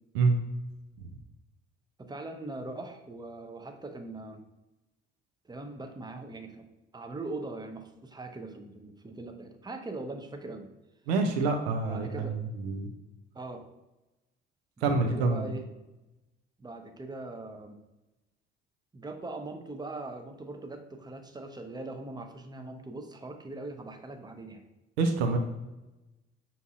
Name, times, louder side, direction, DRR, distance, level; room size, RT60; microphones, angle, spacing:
voice 1, 2.0-4.4 5.4-6.7 6.9-10.7 11.9-12.4 13.3-13.7 14.8-15.6 16.6-17.8 18.9-24.6, right 2 dB, 15° right, 5 dB, 0.6 m, -41 dB
voice 2, 11.1-12.9 14.8-15.5 25.0-25.4, right 3 dB, 80° right, 5 dB, 0.5 m, -27 dB
5.6 x 2.6 x 2.4 m, 1.0 s
hypercardioid pair, 50°, 31 cm